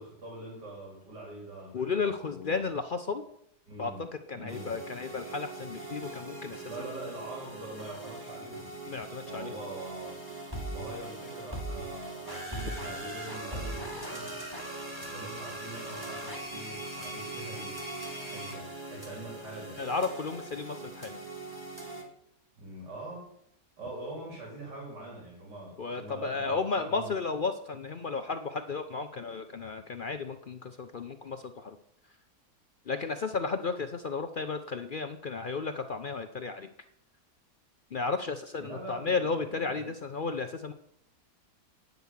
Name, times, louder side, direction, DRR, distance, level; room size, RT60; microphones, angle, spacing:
voice 1, 0.0-2.7 3.7-4.1 4.3-4.7 6.7-8.7 9.2-10.2 10.7-14.7 14.9-19.9 22.6-23.3 23.8-27.1 38.6-40.0, right 1 dB, 80° right, -2 dB, 4.4 m, -44 dB
voice 2, 1.7-3.2 3.8-3.9 4.3-6.6 8.9-9.5 19.8-21.2 25.8-31.8 32.9-36.7 37.9-40.7, left 4 dB, 60° left, 8 dB, 0.5 m, -33 dB
sound 1, 4.5-22.0, right 2 dB, 15° right, 2.3 m, -40 dB
9.6 x 7.9 x 7.3 m, 0.71 s
omnidirectional pair, 1.8 m